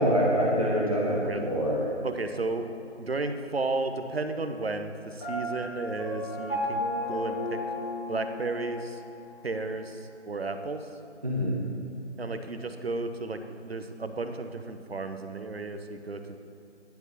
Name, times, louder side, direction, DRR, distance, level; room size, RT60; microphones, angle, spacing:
voice 1, 0.0-1.8 11.2-11.6, equal, 30° right, -5 dB, 1.0 m, -25 dB
voice 2, 2.0-2.7 3.0-7.6 8.1-9.0 9.4-10.9 12.2-16.4, right 3 dB, 55° right, 7 dB, 0.8 m, -33 dB
Piano, 5.2-9.1, left 1 dB, 20° left, 2.4 m, -33 dB
10.5 x 6.1 x 5.4 m, 2.7 s
figure-of-eight pair, 165°, 36 cm